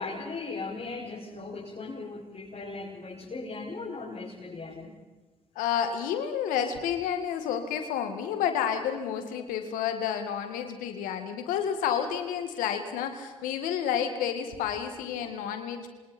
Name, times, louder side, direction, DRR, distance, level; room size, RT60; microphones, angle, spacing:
voice 1, 0.0-4.9 11.4-11.6 15.2-15.4, left 3 dB, 50° left, -6 dB, 6.5 m, -38 dB
voice 2, 5.6-15.9, left 8 dB, 85° left, 7 dB, 2.2 m, -30 dB
27.5 x 26.0 x 4.5 m, 1.2 s
hypercardioid pair, 40°, 14 cm